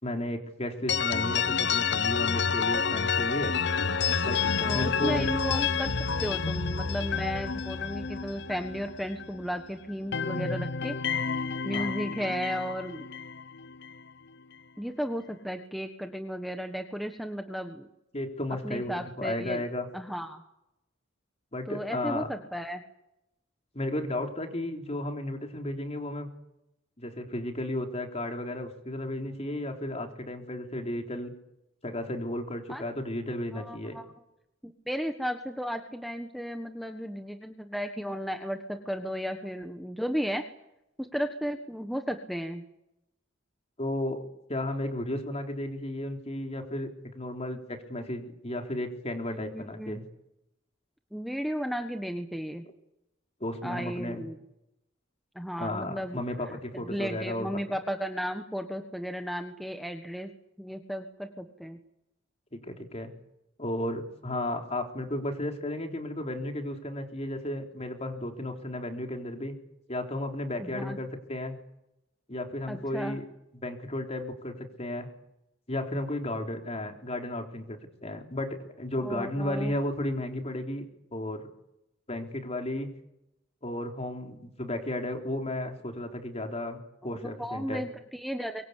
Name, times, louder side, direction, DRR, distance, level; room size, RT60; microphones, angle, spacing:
voice 1, 0.0-3.6 4.2-5.3 11.7-11.9 18.1-19.9 21.5-22.3 23.7-26.3 27.0-31.3 31.8-34.0 43.8-44.2 44.5-50.0 53.4-54.3 55.6-57.6 62.5-63.1 63.6-69.5 69.9-71.5 72.3-73.3 73.5-75.1 75.7-80.9 81.1-81.5 82.1-82.9 83.6-87.9, left 1 dB, 35° left, 3 dB, 3.9 m, -34 dB
sound 1, 0.9-9.6 9.9-14.0, left 6 dB, 60° left, 0.9 m, -29 dB
voice 2, 4.6-5.9 6.2-10.9 11.6-13.1 14.8-17.9 18.6-19.6 19.9-20.4 21.7-22.8 32.7-32.8 33.5-34.1 34.6-40.4 41.0-42.6 49.3-50.0 51.1-52.6 53.6-54.4 55.3-56.2 56.7-60.3 60.6-61.8 70.6-71.0 72.7-73.2 79.0-79.7 87.4-88.7, equal, ahead, 5 dB, 1.4 m, -34 dB
24.0 x 22.5 x 8.5 m, 0.85 s
head